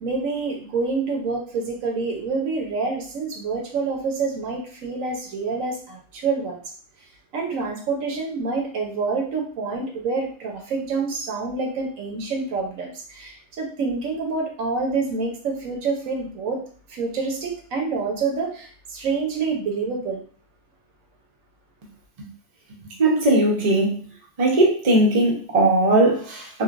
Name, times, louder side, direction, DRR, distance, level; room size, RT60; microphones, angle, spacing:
voice 1, 0.0-6.6 7.3-16.6 16.9-20.2, right 4 dB, 75° right, 1 dB, 1.1 m, -27 dB
voice 2, 23.0-23.9 24.4-26.6, right 1 dB, 35° right, -2 dB, 0.7 m, -19 dB
3.1 x 2.8 x 2.5 m, 0.43 s
omnidirectional pair, 1.4 m